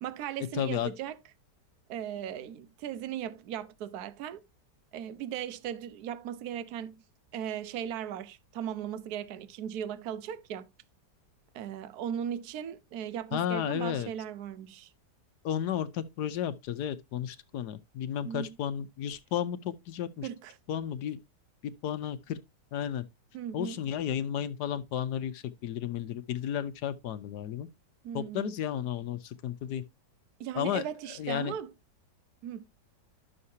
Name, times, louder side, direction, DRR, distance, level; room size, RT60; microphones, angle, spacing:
voice 1, 0.0-1.2 1.9-4.4 4.9-7.0 7.3-10.7 11.5-14.9 18.2-18.6 20.2-20.6 23.3-23.8 28.0-28.5 30.4-31.7 32.4-32.7, right 9 dB, 65° right, 1.2 m, -37 dB
voice 2, 0.5-0.9 13.3-14.1 15.4-20.3 20.7-21.2 21.6-22.4 22.7-23.0 23.5-27.7 28.1-29.8 30.5-30.8 31.2-31.5, left 10 dB, 70° left, 1.3 m, -33 dB
11.0 x 6.6 x 2.7 m
omnidirectional pair, 1.9 m